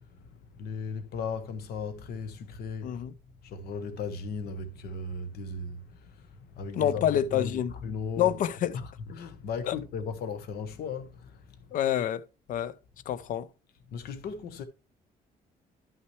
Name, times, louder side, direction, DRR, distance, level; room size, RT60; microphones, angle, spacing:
voice 1, 0.0-3.0 3.4-8.4 8.7-11.7 13.9-14.6, left 4 dB, 75° left, 1.1 m, -37 dB
voice 2, 2.8-3.1 6.8-7.7 8.2-8.8 9.7-9.8 11.7-12.7 13.1-13.5, left 10 dB, 55° left, 0.5 m, -27 dB
11.0 x 5.8 x 3.2 m
cardioid pair, 155°, 16 cm